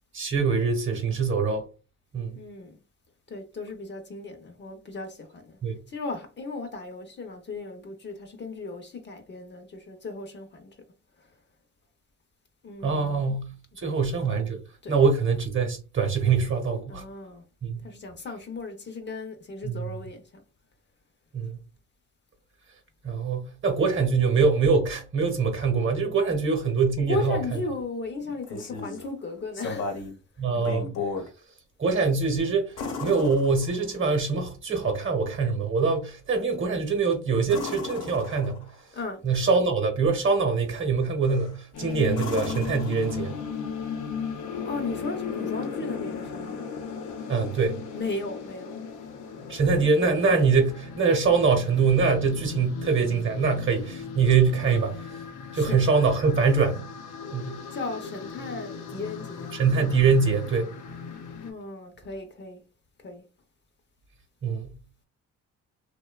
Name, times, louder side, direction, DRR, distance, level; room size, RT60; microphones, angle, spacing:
voice 1, 0.1-1.7 2.1-2.3 5.6-5.8 12.8-13.5 13.8-14.6 14.9-17.0 17.6-17.7 19.6-19.7 21.3-21.5 23.0-27.4 30.4-31.0 31.8-32.7 33.0-38.6 39.2-43.4 47.3-47.8 49.5-55.2 55.5-56.8 57.3-57.6 59.5-60.7 64.4-64.7, right 4 dB, 40° right, 0.9 m, -24 dB
voice 2, 2.3-2.8 3.3-5.6 5.9-10.8 11.2-11.3 12.6-13.3 13.8-14.0 14.8-15.0 16.9-17.4 17.8-20.4 27.0-30.1 31.0-31.1 38.9-39.2 44.6-46.6 47.9-48.9 55.5-55.8 57.7-59.6 61.4-62.6 63.0-63.3, left 3 dB, 35° left, 0.6 m, -36 dB
sound 1, 28.2-29.1 29.5-30.2 30.5-31.3 32.8-34.0 37.4-38.8 41.2-41.6 42.1-43.5 45.6-45.7, left 4 dB, 60° left, 1.0 m, -35 dB
sound 2, 41.7-61.5, left 6 dB, 85° left, 0.6 m, -37 dB
2.7 x 2.2 x 2.2 m
cardioid pair, 90°, 30 cm